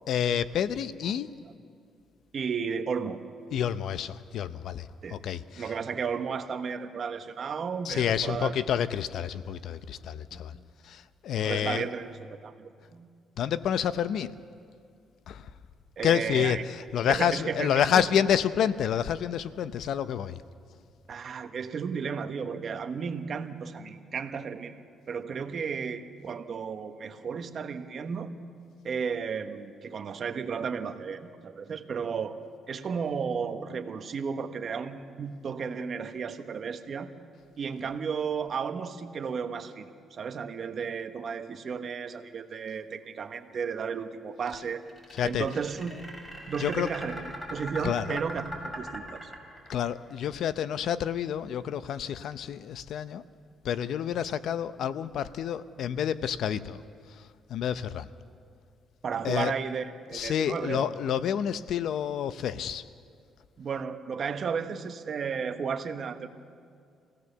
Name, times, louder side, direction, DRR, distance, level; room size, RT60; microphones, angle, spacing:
voice 1, 0.1-1.3 3.5-5.6 7.9-10.5 10.9-11.9 13.4-14.3 15.3-15.4 16.0-16.6 16.9-20.4 45.2-45.5 46.6-46.9 47.8-48.2 49.7-53.2 53.6-56.8 57.5-58.1 59.2-59.5 60.1-62.8, left 9 dB, 75° left, 14 dB, 0.7 m, -28 dB
voice 2, 2.3-3.2 5.0-5.2 5.6-8.5 10.3-10.7 11.3-13.1 16.0-16.6 17.1-18.1 21.1-24.8 25.1-28.3 28.8-32.4 32.7-37.1 37.6-44.8 45.2-46.0 46.5-49.3 59.0-61.0 63.6-66.3, right 6 dB, 50° right, 7 dB, 1.3 m, -34 dB
sound 1, 44.9-49.9, equal, 20° left, 5.6 m, -40 dB
26.0 x 17.0 x 6.8 m, 2.3 s
cardioid pair, 90°, 0 cm